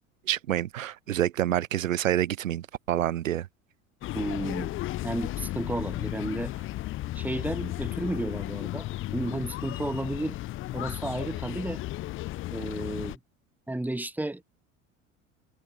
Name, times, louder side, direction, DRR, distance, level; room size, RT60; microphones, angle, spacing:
voice 1, 0.3-3.5, right 12 dB, 80° right, 0.6 m, -27 dB
sound 1, 4.0-13.2, left 16 dB, 30° left, 0.6 m, -34 dB
voice 2, 4.1-4.7 5.0-6.5 7.1-8.9 9.1-10.4 10.7-11.8 12.5-13.2 13.7-14.4, right 1 dB, 5° right, 2.0 m, -32 dB
figure-of-eight pair, 70°, 39 cm